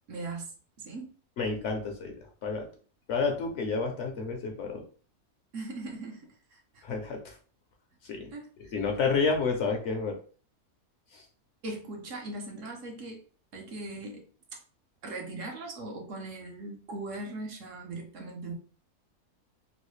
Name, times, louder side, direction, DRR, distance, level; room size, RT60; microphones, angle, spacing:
voice 1, 0.1-0.5 0.8-1.1 5.5-6.8 8.3-8.9 11.6-13.2 13.5-14.2 14.5-14.6 15.0-18.5, right 2 dB, 65° right, 1 dB, 1.0 m, -40 dB
voice 2, 1.4-2.1 2.4-2.7 3.1-4.8 6.8-7.3 8.0-8.3 8.7-10.2 11.1-11.2, left 4 dB, 65° left, 3 dB, 0.8 m, -30 dB
3.1 x 2.4 x 3.0 m, 0.41 s
omnidirectional pair, 1.5 m